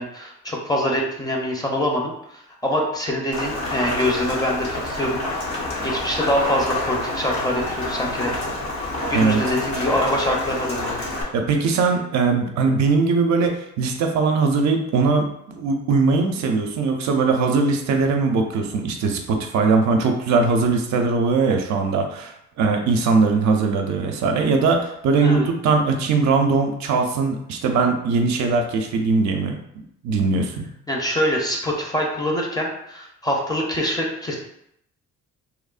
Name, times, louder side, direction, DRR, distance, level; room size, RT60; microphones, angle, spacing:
voice 1, 0.0-2.1 2.6-5.2 5.8-8.3 9.1-11.1 25.2-25.5 30.9-34.4, equal, 15° left, -1 dB, 0.5 m, -24 dB
Rain, 3.3-11.2, left 2 dB, 70° left, 0.8 m, -28 dB
voice 2, 11.3-30.7, right 4 dB, 65° right, 4 dB, 0.5 m, -20 dB
2.9 x 2.0 x 2.4 m, 0.75 s
cardioid pair, 90°, 30 cm